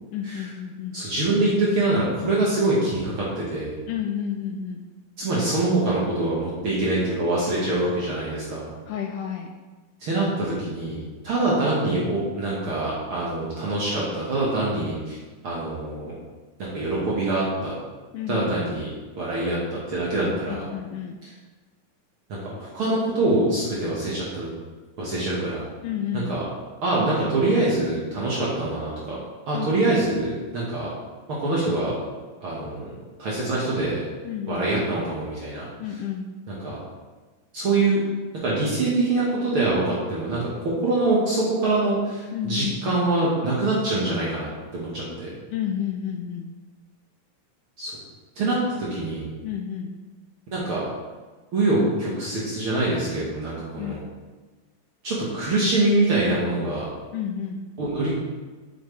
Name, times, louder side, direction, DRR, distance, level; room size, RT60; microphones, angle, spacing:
voice 1, 0.1-1.0 3.9-4.8 8.9-9.5 18.1-18.5 20.5-21.2 25.8-26.3 29.5-29.7 34.2-34.7 35.8-36.3 42.3-43.0 45.1-45.2 45.5-46.5 49.4-49.9 53.8-54.0 57.1-57.6, left 9 dB, 80° left, 4 dB, 1.9 m, -30 dB
voice 2, 0.9-3.7 5.2-8.7 10.0-15.2 15.4-16.1 16.7-17.7 18.3-18.8 19.2-20.6 22.3-24.5 25.0-25.6 26.1-26.4 26.8-29.2 29.5-30.9 31.3-31.9 32.4-32.9 33.2-34.0 34.5-35.7 36.5-36.8 37.5-38.0 38.4-45.3 47.8-47.9 48.4-49.3 50.5-50.8 51.5-54.0 55.0-56.8 57.8-58.2, right 2 dB, 55° right, -6 dB, 1.6 m, -24 dB
7.7 x 7.0 x 3.2 m, 1.3 s
omnidirectional pair, 4.0 m